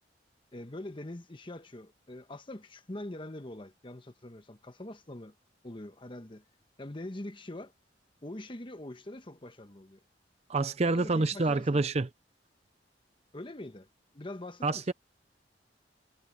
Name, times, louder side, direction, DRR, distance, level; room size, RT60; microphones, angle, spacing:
voice 1, 0.5-5.3 5.6-6.4 6.8-7.7 8.2-10.0 10.8-11.8 13.3-13.9 14.1-14.8, left 1 dB, 30° left, 1.1 m, -43 dB
voice 2, 10.5-12.1 14.6-14.9, right 3 dB, 35° right, 0.6 m, -27 dB
head